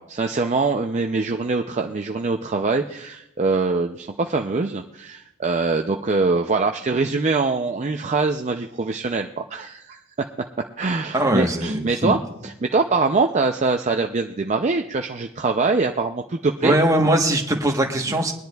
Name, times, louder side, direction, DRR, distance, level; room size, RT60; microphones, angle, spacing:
voice 1, 0.0-10.0 10.8-16.8, right 3 dB, 35° right, 4 dB, 0.4 m, -23 dB
voice 2, 11.1-12.2 16.6-18.3, right 1 dB, 15° right, 2 dB, 1.1 m, -20 dB
21.5 x 10.5 x 2.3 m, 0.82 s
head